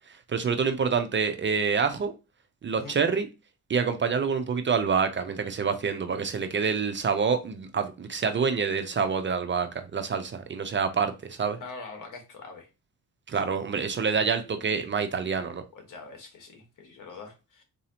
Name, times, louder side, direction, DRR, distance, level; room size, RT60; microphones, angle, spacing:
voice 1, 0.3-2.1 2.6-3.3 3.7-11.6 13.3-15.6, right 5 dB, 35° right, 0.5 m, -27 dB
voice 2, 11.6-12.7 15.7-17.6, left 4 dB, 60° left, 1.3 m, -44 dB
4.1 x 2.7 x 2.8 m
cardioid pair, 95°, 36 cm